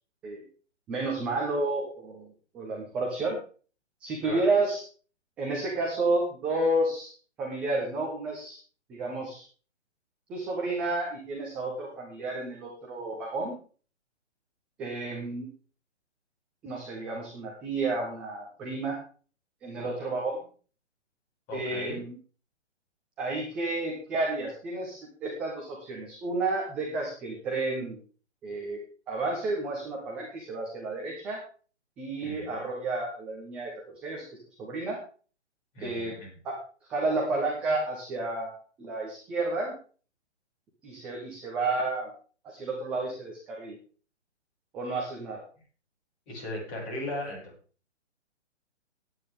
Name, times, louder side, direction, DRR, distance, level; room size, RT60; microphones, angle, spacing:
voice 1, 0.9-2.3 2.5-3.4 4.0-4.8 5.4-7.1 7.4-8.6 8.9-9.4 10.3-13.6 14.8-15.5 16.6-19.0 19.6-20.4 21.5-22.2 23.2-28.0 28.4-31.4 32.0-34.2 34.6-35.0 35.8-36.2 36.4-36.6 36.9-39.7 40.8-42.1 42.4-43.8 44.7-45.4, right 2 dB, 5° right, -1 dB, 0.5 m, -31 dB
voice 2, 21.5-22.0 32.2-32.5 35.7-36.3 46.3-47.4, left 1 dB, 25° left, -3 dB, 6.7 m, -36 dB
18.5 x 8.9 x 3.6 m, 0.39 s
figure-of-eight pair, 130°, 35 cm